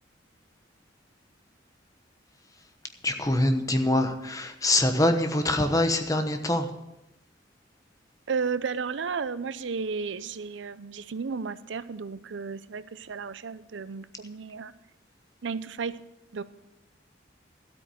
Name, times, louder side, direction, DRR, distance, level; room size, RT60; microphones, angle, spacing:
voice 1, 3.0-6.7, left 1 dB, 20° left, 6 dB, 1.1 m, -24 dB
voice 2, 8.3-14.7 15.4-16.0 16.3-16.4, right 5 dB, 90° right, 15 dB, 0.6 m, -33 dB
12.5 x 8.5 x 6.3 m, 0.90 s
head